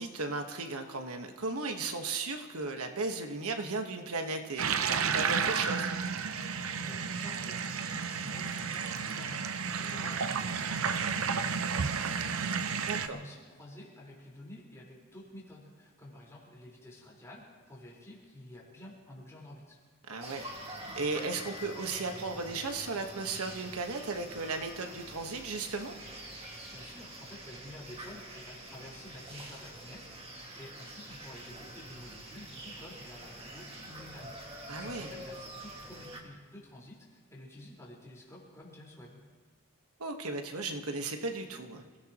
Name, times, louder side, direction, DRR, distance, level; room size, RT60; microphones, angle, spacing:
voice 1, 0.0-5.9 12.8-13.2 20.1-20.4 21.0-25.9 34.7-35.1 40.0-41.8, right 3 dB, 90° right, 5 dB, 1.4 m, -35 dB
sound 1, 4.6-13.1, right 6 dB, 75° right, 0.7 m, -32 dB
voice 2, 6.8-19.8 26.5-30.2 30.5-39.2, left 1 dB, 15° left, -5 dB, 4.4 m, -50 dB
sound 2, 20.2-36.2, right 1 dB, 25° right, 1.9 m, -46 dB
28.0 x 16.5 x 3.0 m, 1.5 s
head